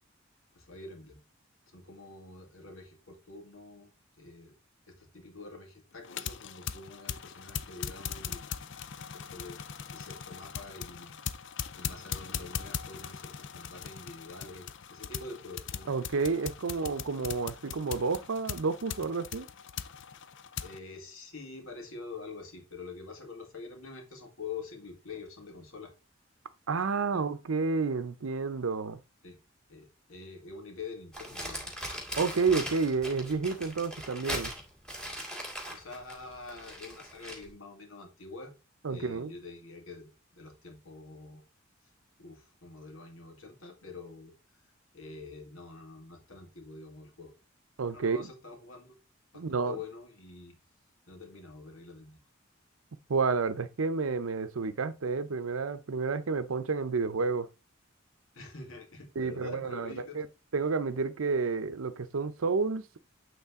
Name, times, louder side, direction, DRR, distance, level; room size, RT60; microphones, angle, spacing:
voice 1, 0.5-1.2 1.7-3.9 4.2-4.5 4.9-9.6 9.9-11.2 11.7-15.9 20.6-25.9 27.1-27.2 29.2-29.4 29.7-31.8 35.7-38.5 38.9-41.4 42.2-44.3 44.9-47.3 47.9-48.9 49.3-50.6 51.1-52.2 58.3-60.2, left 4 dB, 90° left, 2.1 m, -46 dB
sound 1, 6.0-20.8, left 8 dB, 65° left, 0.5 m, -40 dB
voice 2, 15.9-19.5 26.7-29.0 32.1-34.5 38.8-39.3 47.8-48.3 49.3-49.8 53.1-57.5 59.2-60.3 60.5-63.0, right 4 dB, 90° right, 0.6 m, -30 dB
Crumpling crinkling, 31.1-37.5, equal, 5° left, 2.0 m, -39 dB
8.2 x 3.8 x 3.6 m
head